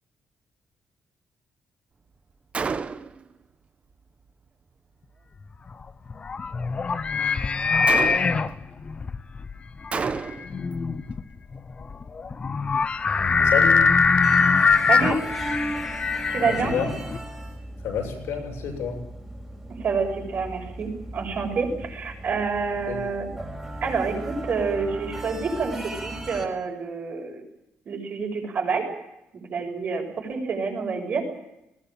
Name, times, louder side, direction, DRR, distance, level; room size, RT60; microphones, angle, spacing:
Gunshot gunfire, 2.5-3.2 7.9-8.5 9.9-10.6, right 5 dB, 30° right, 1.0 m, -29 dB
sound 1, 5.7-17.2, left 5 dB, 30° left, 0.9 m, -23 dB
voice 1, 13.4-13.9 16.4-16.9 17.8-19.0 22.9-23.0, left 7 dB, 85° left, 2 dB, 7.3 m, -29 dB
sound 2, 14.2-26.5, right 1 dB, 10° right, 5.1 m, -37 dB
voice 2, 14.9-15.2 16.3-16.7 19.8-23.3 23.8-27.4 27.9-28.8 29.3-31.3, right 5 dB, 45° right, 2 dB, 7.1 m, -28 dB
20.5 x 18.5 x 9.0 m, 0.87 s
cardioid pair, 155°, 4 cm